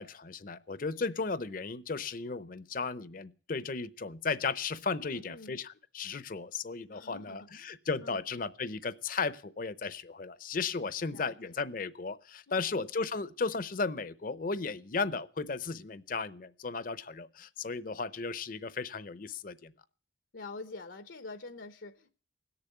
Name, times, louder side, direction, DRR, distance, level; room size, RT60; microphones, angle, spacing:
voice 1, 0.0-19.7, left 4 dB, 45° left, 0.7 m, -35 dB
voice 2, 5.0-5.6 6.9-8.2 11.1-11.3 12.5-12.6 20.3-22.1, left 3 dB, 80° left, 0.9 m, -46 dB
17.5 x 6.9 x 9.3 m
head